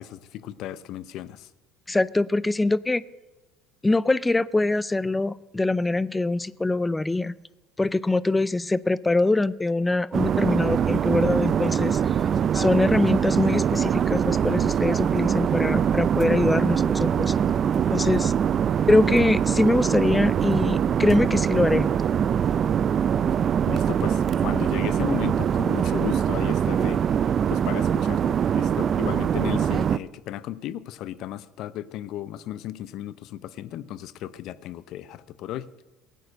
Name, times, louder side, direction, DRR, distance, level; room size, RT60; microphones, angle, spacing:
voice 1, 0.0-1.5 23.7-27.0 27.5-35.7, left 12 dB, 60° left, 0.7 m, -35 dB
voice 2, 1.9-3.0 3.8-7.4 7.8-12.0 12.5-17.3 17.9-18.3 18.9-21.9, left 2 dB, 15° left, 0.5 m, -23 dB
sound 1, 10.1-30.0, right 8 dB, 45° right, 0.5 m, -23 dB
16.5 x 9.2 x 6.4 m
hypercardioid pair, 80°, 0 cm